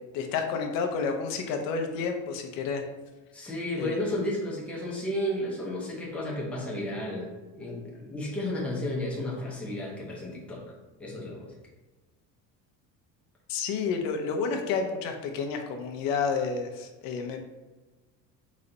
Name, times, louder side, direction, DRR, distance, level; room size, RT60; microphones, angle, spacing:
voice 1, 0.1-2.8 3.8-4.0 13.5-17.4, left 5 dB, 75° left, 4 dB, 0.7 m, -30 dB
voice 2, 3.3-10.6 11.0-11.5, left 1 dB, 5° left, -4 dB, 0.7 m, -33 dB
4.1 x 3.2 x 3.9 m, 1.2 s
cardioid pair, 180°, 35 cm